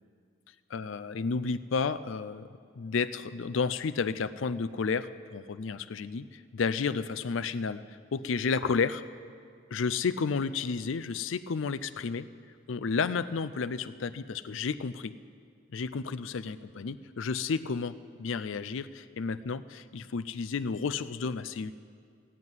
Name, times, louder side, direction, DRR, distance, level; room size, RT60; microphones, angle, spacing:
voice 1, 0.7-2.5 2.8-7.8 8.1-9.0 9.7-12.3 12.7-15.1 15.7-21.7, left 5 dB, 80° left, 13 dB, 0.5 m, -31 dB
15.5 x 7.4 x 9.6 m, 2.2 s
head